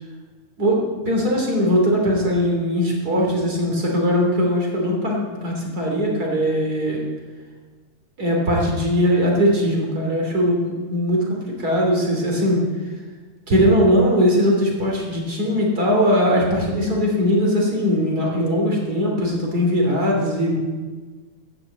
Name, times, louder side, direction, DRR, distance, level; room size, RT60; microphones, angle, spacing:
voice 1, 0.6-7.1 8.2-12.6 13.5-20.6, equal, 30° right, -1 dB, 3.2 m, -20 dB
13.0 x 7.0 x 8.3 m, 1.4 s
omnidirectional pair, 3.8 m